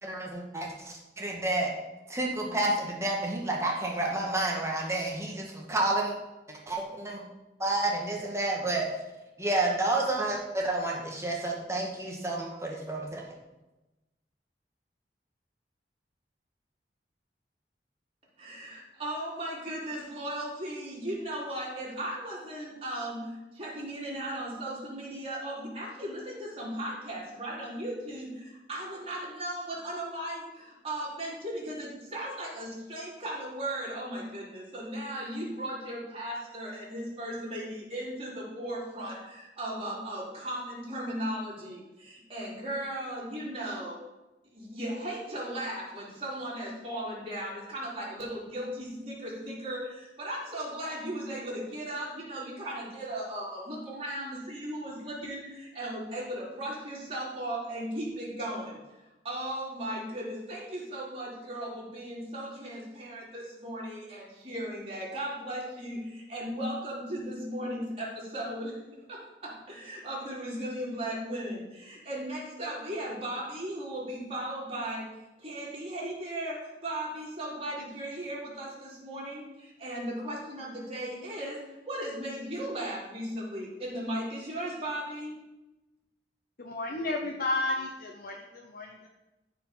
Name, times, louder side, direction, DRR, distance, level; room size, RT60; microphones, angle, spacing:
voice 1, 0.0-1.7 2.1-6.1 6.5-7.2 7.6-8.9 9.4-13.3, right 2 dB, 15° right, -1 dB, 1.6 m, -30 dB
voice 2, 18.4-44.0 44.5-59.0 59.2-68.8 69.1-75.1 75.4-85.3, right 1 dB, 35° right, -6 dB, 4.2 m, -37 dB
voice 3, 86.6-89.1, left 2 dB, 55° left, 0 dB, 1.0 m, -32 dB
14.0 x 5.1 x 5.5 m, 1.0 s
head